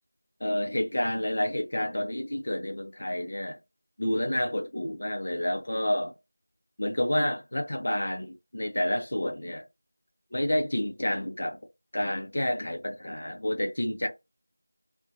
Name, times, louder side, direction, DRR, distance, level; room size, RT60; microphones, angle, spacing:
voice 1, 0.4-3.6 4.0-6.1 6.8-9.6 10.3-11.6 11.9-14.1, left 1 dB, 45° left, 0.5 m, -29 dB
2.5 x 2.2 x 2.6 m
figure-of-eight pair, 175°, 0 cm